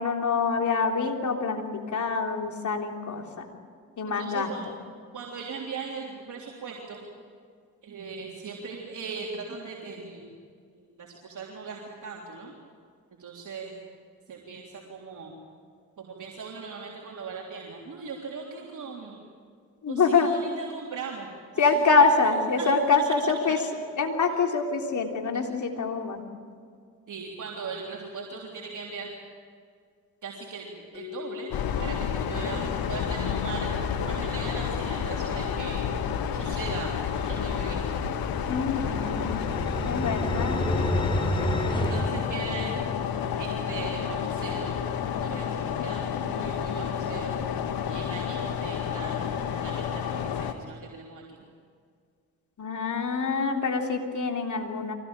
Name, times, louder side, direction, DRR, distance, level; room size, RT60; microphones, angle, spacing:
voice 1, 0.0-3.5 4.0-4.7 19.8-20.3 21.6-23.6 24.0-26.2 38.5-39.4 39.9-40.6 52.6-54.9, left 4 dB, 50° left, 2 dB, 3.6 m, -25 dB
voice 2, 4.1-4.7 5.1-7.0 7.8-10.4 10.7-12.5 13.2-13.7 14.3-15.3 16.0-19.2 19.9-21.3 21.7-22.1 22.6-22.7 23.5-23.6 27.1-29.1 30.2-35.9 36.3-38.0 41.7-42.8 43.4-44.8 45.2-47.3 47.9-51.4, right 5 dB, 55° right, -2 dB, 3.6 m, -39 dB
sound 1, 30.9-35.6, left 8 dB, 85° left, 1.4 m, -41 dB
sound 2, 31.5-50.5, left 7 dB, 70° left, 1.7 m, -30 dB
sound 3, 38.7-43.2, equal, 15° left, 4.6 m, -30 dB
24.0 x 18.0 x 9.0 m, 2.1 s
hypercardioid pair, 50°, 37 cm